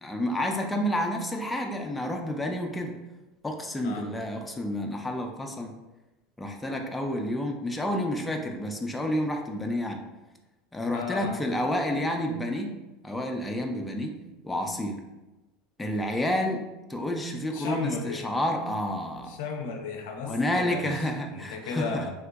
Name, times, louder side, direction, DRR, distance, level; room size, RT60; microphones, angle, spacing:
voice 1, 0.0-3.0 3.4-5.8 6.4-10.0 10.7-12.7 13.0-14.2 14.4-15.0 15.8-16.6 16.9-19.4 20.2-22.0, left 1 dB, 10° left, 3 dB, 0.4 m, -29 dB
voice 2, 10.9-11.4 17.5-18.3 19.3-21.0 21.3-22.1, left 4 dB, 70° left, 3 dB, 0.5 m, -34 dB
3.4 x 2.8 x 2.3 m, 1.1 s
hypercardioid pair, 80°, 0 cm